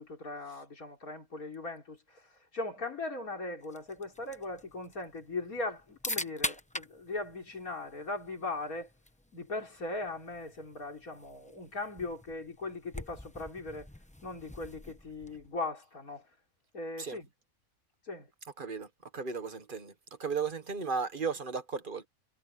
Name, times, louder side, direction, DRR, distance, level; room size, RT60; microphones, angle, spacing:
voice 1, 0.0-8.9 9.3-13.9 14.2-16.3 16.7-17.3 18.1-18.3, left 2 dB, 80° left, 4.8 m, -39 dB
sound 1, 3.6-15.6, left 1 dB, 5° left, 0.8 m, -44 dB
voice 2, 18.6-19.9 20.2-22.1, right 5 dB, 40° right, 1.4 m, -35 dB
omnidirectional pair, 1.5 m